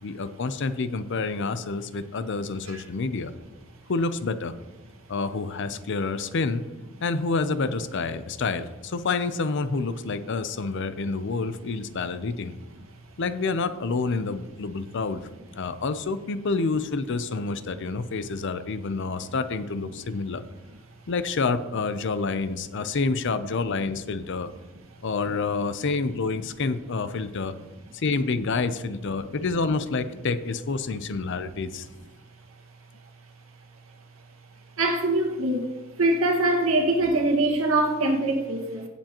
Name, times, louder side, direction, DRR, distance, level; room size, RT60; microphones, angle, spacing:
voice 1, 0.0-3.3 3.9-4.5 5.1-6.6 7.0-12.5 13.2-15.2 15.5-20.4 21.1-24.5 25.0-27.5 27.9-31.9, left 4 dB, 60° left, 0.6 m, -28 dB
voice 2, 34.8-35.7 36.0-38.9, right 2 dB, 85° right, 1.7 m, -23 dB
16.0 x 7.2 x 3.0 m
head